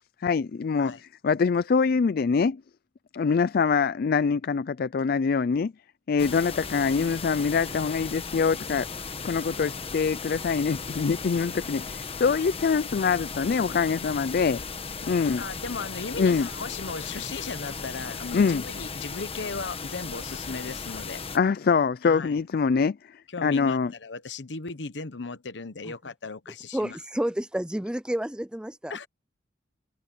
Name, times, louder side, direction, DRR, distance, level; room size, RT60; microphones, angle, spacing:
voice 1, 0.2-2.6 3.1-5.7 6.1-8.9 9.2-14.6 15.0-15.4 16.2-16.5 18.3-18.6 21.3-23.9, left 5 dB, 55° left, 0.4 m, -24 dB
sound 1, 6.2-21.4, left 5 dB, 35° left, 1.2 m, -36 dB
voice 2, 15.4-21.2 22.0-22.4 23.3-27.0 28.9-29.1, left 4 dB, 80° left, 1.0 m, -36 dB
voice 3, 26.7-29.0, right 1 dB, 5° right, 0.4 m, -30 dB
head